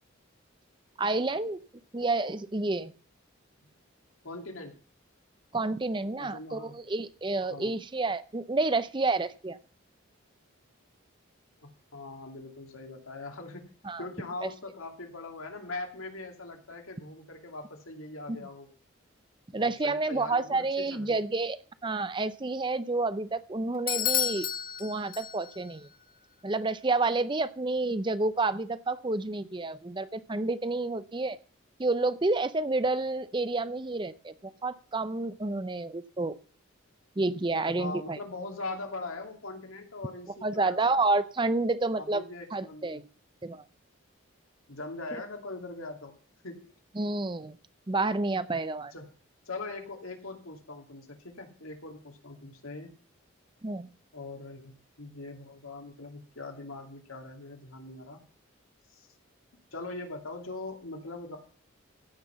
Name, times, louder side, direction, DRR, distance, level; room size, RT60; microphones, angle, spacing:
voice 1, 1.0-1.6 1.9-2.9 5.5-9.6 13.8-14.0 14.4-14.5 18.3-18.4 19.5-24.5 24.8-25.9 26.4-31.4 31.8-34.3 34.6-36.4 37.2-38.2 40.4-42.2 42.5-43.0 43.4-43.6 45.1-45.2 47.0-47.6 47.9-48.9 53.6-53.9, right 3 dB, 25° right, 14 dB, 0.5 m, -29 dB
voice 2, 4.2-4.7 6.2-6.8 7.5-7.8 11.6-13.7 14.0-18.7 19.5-21.2 37.6-41.1 42.0-43.0 44.7-46.2 46.4-46.7 48.9-49.1 49.5-52.9 54.1-58.2 58.9-59.1 59.7-61.4, left 2 dB, 85° left, 3 dB, 2.6 m, -41 dB
Bell / Doorbell, 23.9-25.7, left 11 dB, 40° left, 0.6 m, -31 dB
15.5 x 5.9 x 7.0 m, 0.42 s
head